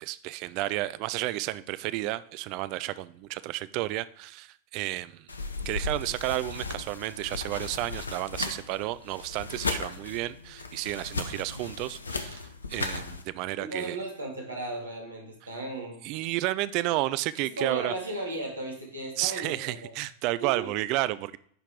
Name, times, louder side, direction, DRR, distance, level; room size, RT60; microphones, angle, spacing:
voice 1, 0.0-5.3 5.7-12.4 12.7-14.0 16.0-17.9 19.2-21.4, right 17 dB, 45° right, 15 dB, 0.4 m, -31 dB
sound 1, 5.3-13.2, left 3 dB, 75° left, 0.7 m, -36 dB
voice 2, 13.6-16.0 17.4-19.8 20.4-20.7, right 2 dB, 75° right, 0 dB, 2.2 m, -35 dB
10.5 x 4.6 x 3.7 m, 0.63 s
figure-of-eight pair, 90°, 0 cm